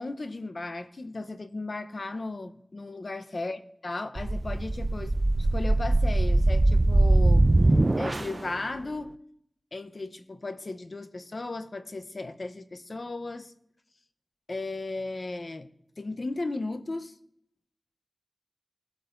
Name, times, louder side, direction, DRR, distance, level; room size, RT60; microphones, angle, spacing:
voice 1, 0.0-7.5 8.0-9.2 9.7-13.5 14.5-15.7 16.0-17.1, left 2 dB, 60° left, 9 dB, 0.7 m, -36 dB
sound 1, 4.2-8.5, right 2 dB, 45° right, 0.4 m, -22 dB
19.0 x 8.1 x 2.6 m, 0.76 s
cardioid pair, 45°, 0 cm